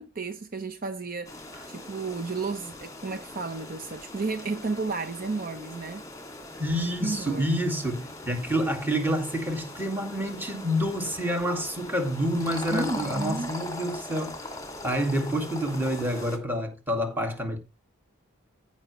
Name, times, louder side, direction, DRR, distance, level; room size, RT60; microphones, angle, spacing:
voice 1, 0.0-1.4 1.7-6.0 7.0-7.7 12.7-13.5, right 3 dB, 45° right, 0.8 m, -32 dB
sound 1, 1.2-16.4, left 1 dB, 15° left, 2.0 m, -41 dB
voice 2, 6.6-14.5 14.8-17.6, equal, 10° right, 2.1 m, -28 dB
15.0 x 5.8 x 3.1 m
head